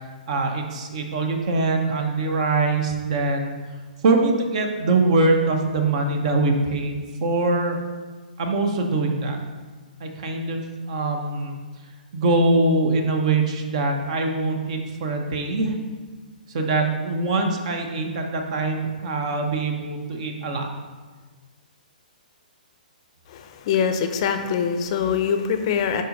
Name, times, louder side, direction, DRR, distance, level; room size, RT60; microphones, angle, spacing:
voice 1, 0.3-3.6 4.0-7.8 8.4-9.4 10.0-10.6 10.9-11.6 12.1-15.7 16.5-20.7, right 3 dB, 45° right, 4 dB, 1.0 m, -23 dB
voice 2, 23.3-26.0, left 7 dB, 40° left, 7 dB, 0.6 m, -23 dB
6.6 x 5.4 x 3.9 m, 1.4 s
figure-of-eight pair, 120°, 5 cm